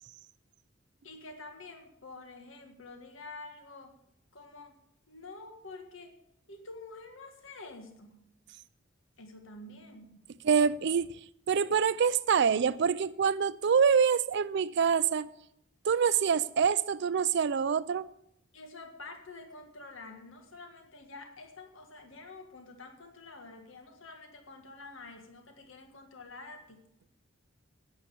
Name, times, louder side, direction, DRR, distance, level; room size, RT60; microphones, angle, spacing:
voice 1, 1.0-3.9 4.3-4.8 5.1-6.2 6.5-8.2 9.2-10.3 18.5-26.8, left 3 dB, 75° left, 1.8 m, -48 dB
voice 2, 10.4-11.2 11.5-15.3 15.8-18.1, right 6 dB, 60° right, 0.4 m, -26 dB
11.0 x 9.9 x 8.4 m
head